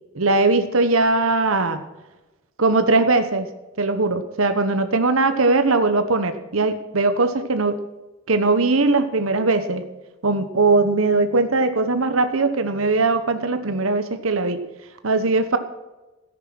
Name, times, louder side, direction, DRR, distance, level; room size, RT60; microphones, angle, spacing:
voice 1, 0.1-1.8 2.6-3.5 3.8-7.8 8.3-9.8 10.2-14.6 15.0-15.6, right 3 dB, 75° right, 9 dB, 1.1 m, -20 dB
14.0 x 10.0 x 6.1 m, 1.1 s
head